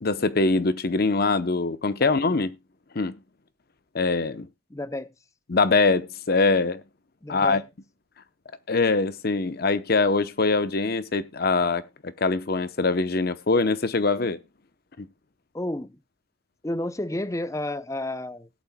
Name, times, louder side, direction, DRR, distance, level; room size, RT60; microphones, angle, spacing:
voice 1, 0.0-2.5 2.9-3.2 3.9-4.5 5.5-6.8 7.3-7.6 8.7-14.4 15.0-15.1, left 3 dB, 50° left, 0.8 m, -23 dB
voice 2, 4.7-5.1 7.2-7.6 15.5-16.0 16.6-18.5, left 1 dB, 15° left, 0.6 m, -31 dB
18.0 x 8.6 x 2.2 m
head